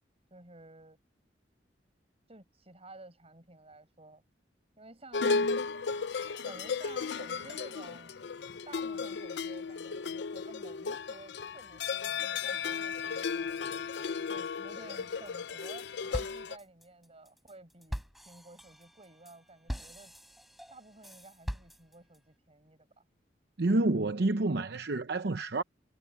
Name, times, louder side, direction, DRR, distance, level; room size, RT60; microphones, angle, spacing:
voice 1, 0.3-1.0 2.3-4.2 4.8-5.5 6.4-8.2 8.7-13.6 14.3-20.1 20.7-23.0, right 2 dB, 35° right, 6.4 m, -52 dB
sound 1, 5.1-16.6, left 5 dB, 70° left, 0.5 m, -35 dB
sound 2, 15.3-15.8 16.1-22.2, equal, ahead, 4.8 m, -42 dB
voice 2, 23.6-25.6, right 2 dB, 65° right, 0.8 m, -28 dB
head